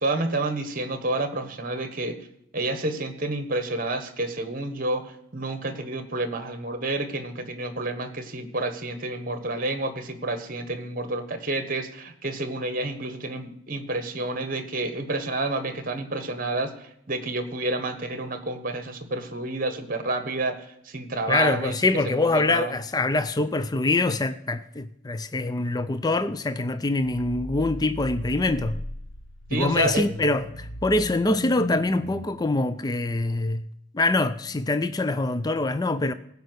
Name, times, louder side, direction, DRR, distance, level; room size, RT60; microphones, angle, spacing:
voice 1, 0.0-2.2 2.5-21.7 22.0-22.7 29.5-30.1, right 2 dB, 40° right, 1.3 m, -29 dB
voice 2, 21.3-28.8 29.5-33.6 33.9-36.1, left 2 dB, 20° left, 0.4 m, -24 dB
sound 1, 27.0-32.3, left 1 dB, 80° left, 1.0 m, -36 dB
16.0 x 5.5 x 8.0 m
head